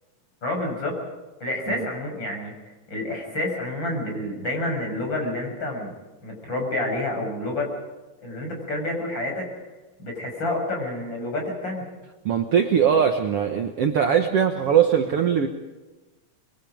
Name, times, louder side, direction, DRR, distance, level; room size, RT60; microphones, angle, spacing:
voice 1, 0.4-1.0 1.4-2.5 2.9-5.9 6.2-7.7 8.2-9.5 10.0-11.9, left 1 dB, 35° left, 1 dB, 7.4 m, -28 dB
voice 2, 12.3-15.5, right 8 dB, 60° right, 5 dB, 1.8 m, -21 dB
25.5 x 22.5 x 5.1 m, 1.2 s
omnidirectional pair, 3.7 m